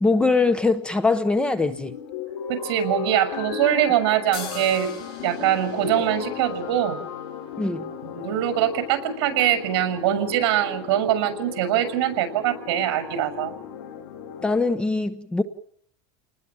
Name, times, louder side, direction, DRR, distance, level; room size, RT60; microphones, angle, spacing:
voice 1, 0.0-1.9 7.6-7.9 14.4-15.4, left 3 dB, 5° left, 1.0 m, -22 dB
sound 1, 1.4-14.6, left 9 dB, 70° left, 7.4 m, -36 dB
voice 2, 2.5-4.9 5.2-7.0 8.0-13.5, right 11 dB, 65° right, 6.4 m, -23 dB
sound 2, 4.3-7.9, left 6 dB, 40° left, 7.7 m, -42 dB
29.5 x 20.5 x 7.4 m
supercardioid pair, 165°, 13 cm